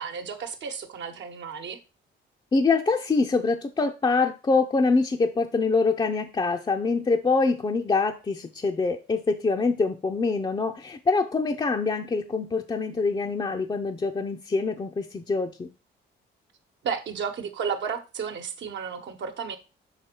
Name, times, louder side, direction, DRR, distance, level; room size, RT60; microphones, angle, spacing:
voice 1, 0.0-1.8 16.8-19.6, right 6 dB, 65° right, 1.1 m, -33 dB
voice 2, 2.5-15.7, left 4 dB, 25° left, 0.6 m, -25 dB
6.0 x 4.9 x 4.4 m
cardioid pair, 90°, 20 cm